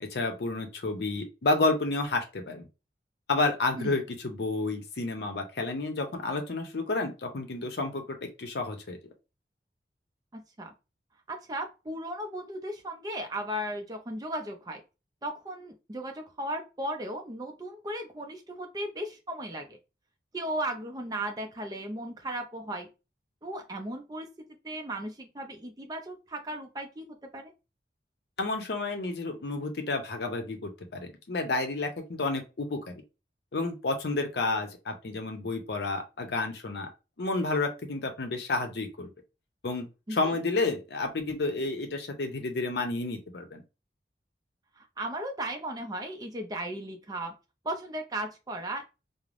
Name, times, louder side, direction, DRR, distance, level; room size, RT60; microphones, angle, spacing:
voice 1, 0.0-2.7 3.3-9.0 28.4-32.9 33.5-36.9 37.2-39.1 39.6-43.6, left 3 dB, 70° left, 4 dB, 0.6 m, -30 dB
voice 2, 10.3-10.7 11.3-14.8 15.2-19.8 20.3-22.9 23.4-24.3 24.6-27.5 40.1-40.4 44.8-47.3 47.6-48.9, right 1 dB, 20° right, 4 dB, 0.4 m, -36 dB
3.2 x 2.0 x 2.4 m, 0.28 s
head